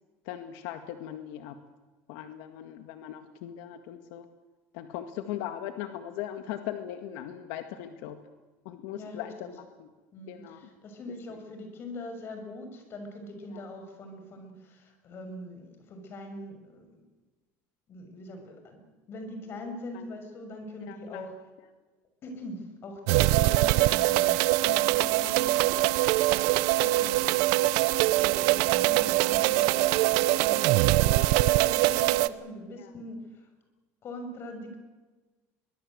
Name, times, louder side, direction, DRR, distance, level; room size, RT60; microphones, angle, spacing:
voice 1, 0.2-1.6 2.1-4.3 4.7-8.2 8.6-9.9 10.3-10.7 11.3-11.4 13.5-13.7 19.9-20.1 20.9-21.3 24.6-25.1 29.9-30.0 32.8-32.9, left 11 dB, 80° left, 7 dB, 1.9 m, -39 dB
voice 2, 8.9-9.5 10.1-17.0 17.9-21.3 22.2-24.4 24.7-26.0 26.3-33.5 34.0-34.8, left 1 dB, 35° left, 6 dB, 6.4 m, -42 dB
sound 1, 23.1-32.3, right 18 dB, 75° right, 0.8 m, -23 dB
23.5 x 22.0 x 8.0 m, 1.2 s
cardioid pair, 150°, 7 cm